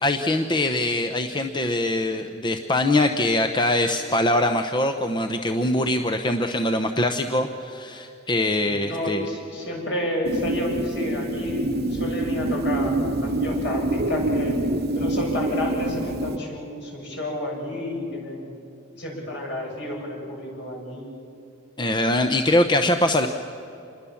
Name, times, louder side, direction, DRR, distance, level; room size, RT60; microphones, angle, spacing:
voice 1, 0.0-9.3 21.8-23.3, left 1 dB, 25° left, 6 dB, 0.8 m, -23 dB
voice 2, 8.7-14.6 14.9-18.5 19.0-21.2 22.6-22.7, left 1 dB, 60° left, -1 dB, 7.2 m, -30 dB
sound 1, 10.2-16.4, right 2 dB, 50° right, 1.0 m, -26 dB
27.5 x 21.5 x 7.2 m, 2.8 s
head